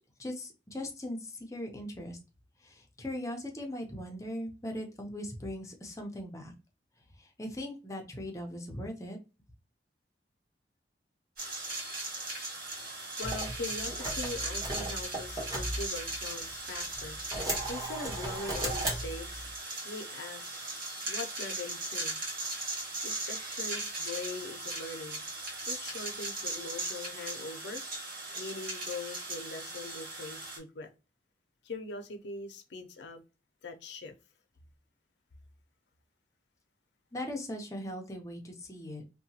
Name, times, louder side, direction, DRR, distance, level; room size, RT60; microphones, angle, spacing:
voice 1, 0.2-2.2 2.6-6.5 7.2-9.2 37.1-39.0, left 1 dB, 20° left, 0.6 m, -39 dB
sound 1, 11.4-30.6, right 2 dB, 55° right, 1.1 m, -38 dB
voice 2, 12.7-22.2 23.0-25.2 25.7-27.8 28.4-30.9 31.6-33.2 33.6-34.1, left 3 dB, 80° left, 0.5 m, -42 dB
sound 2, 13.2-16.5 16.9-19.5, right 1 dB, 20° right, 1.0 m, -37 dB
2.8 x 2.2 x 2.7 m
head